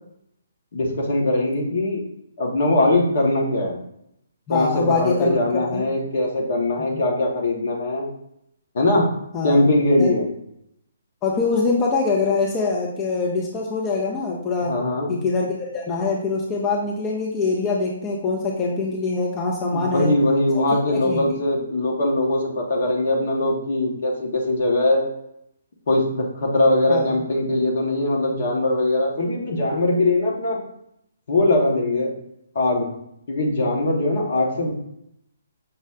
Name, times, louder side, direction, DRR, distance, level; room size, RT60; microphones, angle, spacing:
voice 1, 0.7-2.0 2.4-3.8 4.5-8.1 8.7-9.1 9.4-10.3 14.6-15.1 19.7-25.1 25.9-30.6 31.3-32.1 32.5-32.9 33.3-34.7, left 2 dB, 55° left, 0 dB, 1.0 m, -21 dB
voice 2, 4.5-5.8 9.3-9.6 10.0-10.1 11.2-14.7 15.1-20.1 20.5-20.6 20.9-21.3 26.9-27.0, left 4 dB, 20° left, -2 dB, 0.5 m, -24 dB
5.9 x 2.1 x 3.5 m, 0.75 s
figure-of-eight pair, 135°, 0 cm